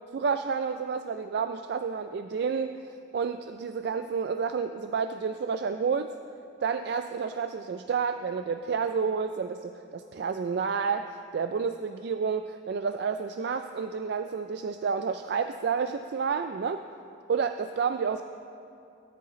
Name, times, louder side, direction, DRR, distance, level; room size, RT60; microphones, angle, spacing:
voice 1, 0.1-2.8 3.1-6.1 6.6-16.8 17.3-18.2, right 6 dB, 55° right, 8 dB, 0.3 m, -30 dB
17.5 x 10.5 x 3.1 m, 2.6 s
head